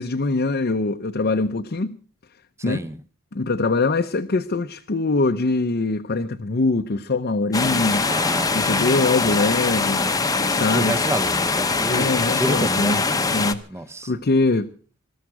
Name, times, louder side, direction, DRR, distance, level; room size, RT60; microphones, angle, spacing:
voice 1, 0.0-2.0 2.6-2.9 3.3-8.1 8.5-10.0 10.5-11.0 11.9-13.0 13.3-13.6 14.0-14.7, left 3 dB, 50° left, 0.7 m, -23 dB
voice 2, 2.7-3.0 8.0-9.0 10.7-13.3 13.7-14.1, right 1 dB, 15° right, 0.9 m, -29 dB
sound 1, 7.5-13.5, left 4 dB, 20° left, 0.9 m, -22 dB
21.0 x 13.5 x 4.7 m
head